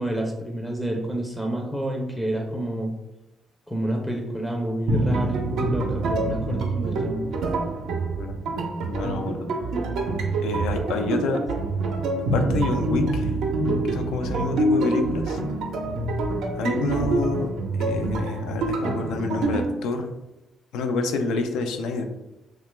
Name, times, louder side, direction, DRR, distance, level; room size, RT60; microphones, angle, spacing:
voice 1, 0.0-2.9 3.7-7.3, right 1 dB, 5° right, 0 dB, 0.4 m, -29 dB
sound 1, 4.9-19.6, right 2 dB, 80° right, 0.5 m, -26 dB
voice 2, 8.2-9.4 10.4-11.4 12.3-13.3 13.8-15.4 16.5-17.5 17.7-20.1 20.7-22.0, left 3 dB, 85° left, 6 dB, 0.4 m, -28 dB
2.9 x 2.2 x 3.1 m, 0.97 s
cardioid pair, 90°, 0 cm